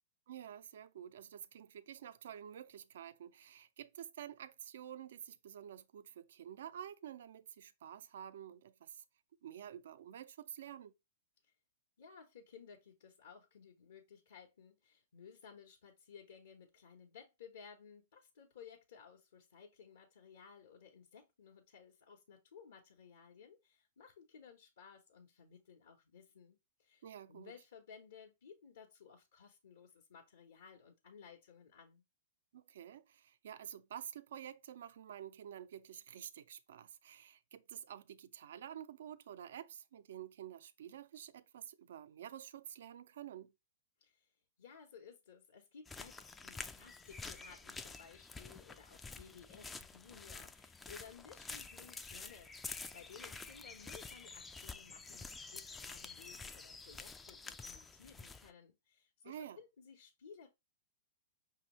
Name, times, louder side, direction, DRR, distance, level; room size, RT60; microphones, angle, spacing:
voice 1, 0.3-9.0 9.4-10.9 27.0-27.5 32.5-43.5 59.2-59.6, right 10 dB, 65° right, 0.4 m, -50 dB
voice 2, 12.0-27.0 27.3-32.0 44.0-44.3 44.6-60.5, left 6 dB, 70° left, 0.9 m, -58 dB
sound 1, 45.9-58.5, left 4 dB, 10° left, 0.3 m, -49 dB
5.2 x 2.8 x 2.9 m
hypercardioid pair, 115°, 0 cm